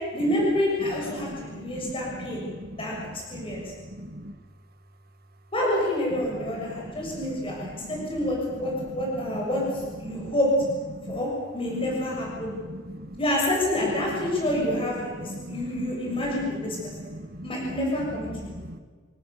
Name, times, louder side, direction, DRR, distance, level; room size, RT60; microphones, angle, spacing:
voice 1, 0.1-2.4 2.8-2.9 3.3-3.6 5.5-9.6 10.0-10.5 11.1-12.5 13.2-16.8 17.0-17.1 17.4-18.3, left 1 dB, 25° left, -3 dB, 7.0 m, -28 dB
voice 2, 1.1-4.3 6.3-8.1 9.0-9.4 10.0-10.3 10.9-11.2 11.7-11.9 12.4-13.2 14.1-14.2 14.8-14.9 15.2-15.9 16.4-17.5 18.3-18.8, right 1 dB, 50° right, 8 dB, 2.0 m, -40 dB
27.5 x 20.5 x 7.0 m, 1.5 s
head